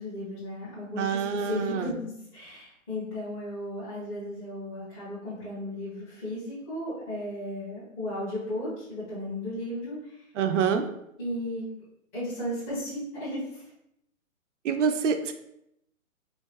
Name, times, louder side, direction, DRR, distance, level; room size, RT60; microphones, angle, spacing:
voice 1, 0.0-10.2 11.2-11.6 12.1-13.6, left 1 dB, 15° left, -14 dB, 0.9 m, -35 dB
voice 2, 1.0-1.9 10.4-10.9 14.6-15.3, right 6 dB, 60° right, 7 dB, 0.5 m, -26 dB
3.7 x 2.4 x 2.9 m, 0.79 s
hypercardioid pair, 160°, 42 cm